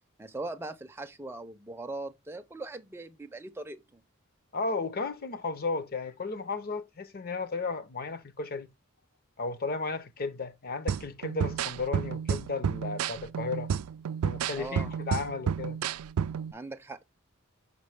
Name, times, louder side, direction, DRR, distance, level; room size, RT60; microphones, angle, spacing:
voice 1, 0.2-4.0 14.6-14.9 16.5-17.0, right 2 dB, 10° right, 0.5 m, -40 dB
voice 2, 4.5-8.7 9.4-13.7 14.2-15.8, left 4 dB, 45° left, 0.7 m, -34 dB
sound 1, 10.9-16.5, right 8 dB, 85° right, 0.4 m, -31 dB
6.3 x 5.2 x 3.3 m
head